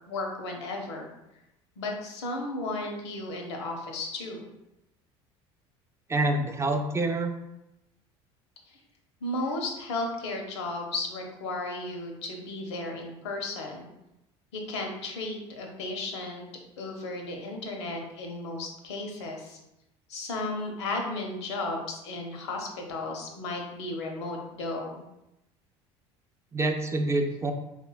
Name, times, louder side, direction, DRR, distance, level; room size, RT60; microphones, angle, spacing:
voice 1, 0.1-1.1 1.8-4.4 8.7-8.8 9.2-13.9 14.5-16.4 16.8-19.6 20.1-25.0, left 2 dB, 90° left, 2 dB, 0.5 m, -34 dB
voice 2, 6.1-7.4 26.5-27.5, right 2 dB, 20° right, 4 dB, 0.4 m, -26 dB
3.2 x 2.1 x 2.3 m, 0.90 s
hypercardioid pair, 80°, 14 cm